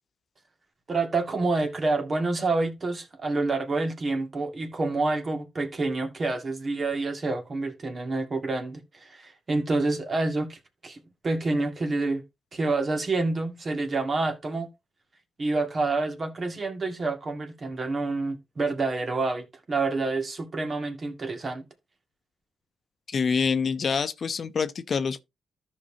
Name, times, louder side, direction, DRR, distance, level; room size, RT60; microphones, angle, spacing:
voice 1, 0.9-12.2 12.5-14.7 15.4-21.6, right 3 dB, 45° right, 2.0 m, -28 dB
voice 2, 23.1-25.2, left 5 dB, 55° left, 0.7 m, -26 dB
13.5 x 5.4 x 2.8 m
hypercardioid pair, 45°, 0 cm